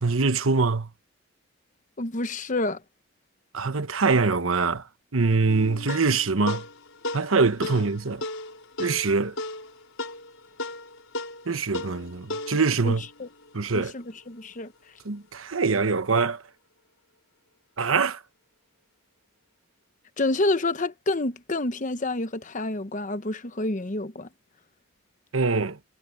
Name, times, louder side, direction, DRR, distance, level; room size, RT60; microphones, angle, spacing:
voice 1, 0.0-0.9 3.5-4.8 5.1-6.6 7.1-8.2 8.8-9.3 11.5-13.0 13.5-13.9 15.0-16.4 17.8-18.2 25.3-25.8, right 4 dB, 85° right, 1.1 m, -23 dB
voice 2, 2.0-2.8 12.8-13.3 13.7-14.7 20.2-24.3, left 2 dB, 40° left, 1.0 m, -28 dB
sound 1, 5.5-14.2, left 2 dB, 80° left, 5.0 m, -37 dB
head